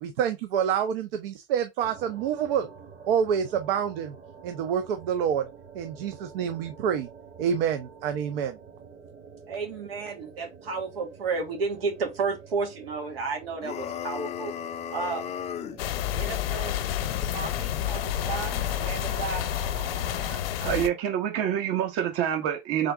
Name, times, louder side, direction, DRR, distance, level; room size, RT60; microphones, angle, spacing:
voice 1, 0.0-2.7 3.1-4.1 4.4-5.5 5.7-7.1 7.4-8.6, right 8 dB, 70° right, 0.8 m, -27 dB
sound 1, 1.8-20.4, right 6 dB, 35° right, 1.5 m, -47 dB
voice 2, 9.5-14.5 14.9-15.2 16.1-16.8 17.2-19.4, right 4 dB, 90° right, 2.1 m, -32 dB
sound 2, 13.6-15.8, left 10 dB, 25° left, 0.4 m, -35 dB
sound 3, 15.8-20.9, left 11 dB, 75° left, 0.7 m, -29 dB
voice 3, 20.3-22.9, right 10 dB, 50° right, 1.4 m, -27 dB
3.9 x 3.8 x 3.5 m
hypercardioid pair, 110°, 29 cm